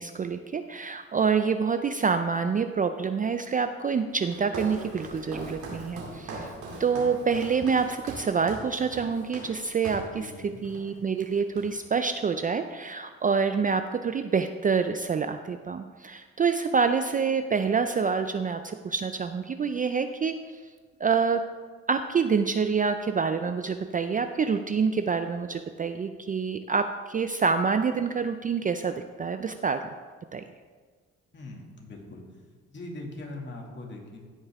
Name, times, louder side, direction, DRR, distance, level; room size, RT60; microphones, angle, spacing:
voice 1, 0.0-6.5 6.8-20.4 21.0-21.4 21.9-29.8 30.3-30.4, right 5 dB, 30° right, 8 dB, 0.4 m, -27 dB
Walk footsteps, 4.2-10.2 10.6-10.9 11.2-12.0, right 2 dB, 80° right, 2.4 m, -40 dB
voice 2, 10.1-10.6 31.3-32.2 32.7-34.2, left 2 dB, 40° left, 0 dB, 2.2 m, -41 dB
16.0 x 5.4 x 3.6 m, 1.5 s
cardioid pair, 90°, 30 cm